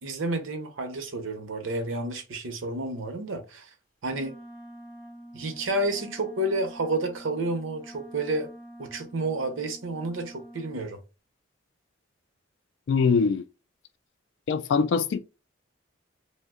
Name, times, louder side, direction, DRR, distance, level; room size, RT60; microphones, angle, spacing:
voice 1, 0.0-3.7 4.0-4.4 5.3-8.5 8.8-11.0, right 2 dB, 90° right, 0.7 m, -30 dB
Wind instrument woodwind instrument, 4.1-10.9, equal, 10° left, 1.0 m, -46 dB
voice 2, 12.9-13.4 14.5-15.2, left 5 dB, 65° left, 0.3 m, -22 dB
2.7 x 2.1 x 3.5 m
head